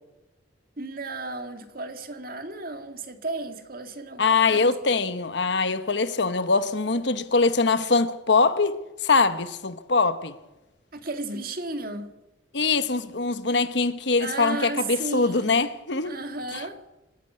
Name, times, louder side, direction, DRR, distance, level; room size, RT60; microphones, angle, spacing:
voice 1, 0.8-4.8 10.9-12.1 14.2-15.6 16.0-16.8, right 2 dB, 50° right, 1.9 m, -34 dB
voice 2, 4.2-10.3 12.5-16.2 16.5-16.6, left 4 dB, 65° left, 1.1 m, -23 dB
27.0 x 10.0 x 9.6 m
head